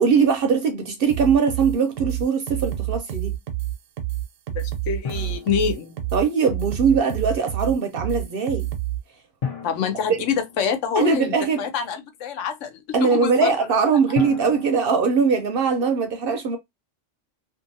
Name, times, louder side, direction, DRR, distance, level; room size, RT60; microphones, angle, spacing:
voice 1, 0.0-3.3 6.1-8.7 10.1-10.3 11.0-11.6 12.9-16.6, right 5 dB, 60° right, 0.6 m, -21 dB
sound 1, 1.1-9.0, right 14 dB, 85° right, 1.0 m, -28 dB
voice 2, 4.5-6.0 9.6-12.8 13.2-13.5, left 7 dB, 80° left, 0.9 m, -26 dB
Drum, 5.0-6.5 9.4-11.2 14.2-15.8, left 7 dB, 55° left, 0.4 m, -35 dB
2.6 x 2.5 x 2.6 m
omnidirectional pair, 1.3 m